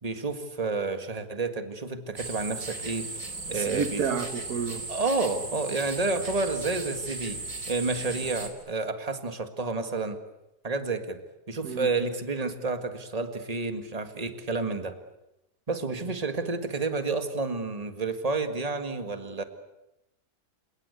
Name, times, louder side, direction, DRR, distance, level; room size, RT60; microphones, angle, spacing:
voice 1, 0.0-3.1 3.5-4.2 4.9-7.4 7.7-10.2 10.6-11.2 11.5-15.0 15.7-19.4, right 3 dB, 25° right, 1.8 m, -30 dB
sound 1, 2.2-8.5, right 3 dB, 60° right, 3.3 m, -37 dB
voice 2, 3.5-4.9 11.6-11.9, right 6 dB, 85° right, 1.8 m, -30 dB
28.5 x 18.5 x 8.3 m
omnidirectional pair, 1.6 m